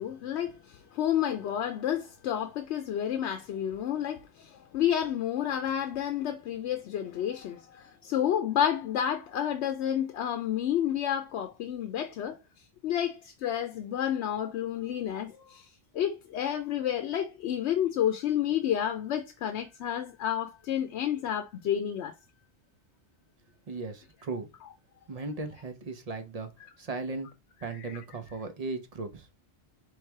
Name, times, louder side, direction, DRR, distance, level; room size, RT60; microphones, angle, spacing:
voice 1, 0.0-12.4 12.8-15.6 15.9-22.1 27.6-28.0, left 10 dB, 90° left, 0.9 m, -30 dB
voice 2, 23.7-24.5 25.1-26.5 26.8-27.3 27.6-29.3, right 3 dB, 40° right, 0.7 m, -37 dB
3.4 x 3.2 x 4.5 m
omnidirectional pair, 1.1 m